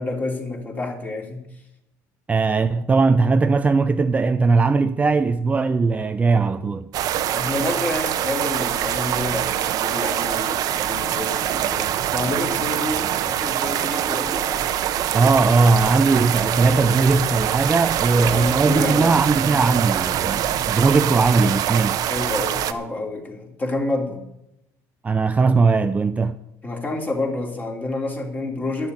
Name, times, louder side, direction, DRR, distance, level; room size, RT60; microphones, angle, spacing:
voice 1, 0.0-1.5 7.3-14.7 18.2-19.1 22.1-24.2 26.6-28.9, left 2 dB, 25° left, 3.0 m, -28 dB
voice 2, 2.3-6.9 15.1-22.0 25.0-26.3, right 4 dB, 20° right, 0.5 m, -19 dB
sound 1, 6.9-22.7, right 11 dB, 55° right, 0.9 m, -24 dB
11.5 x 7.0 x 9.3 m
cardioid pair, 115°, 7 cm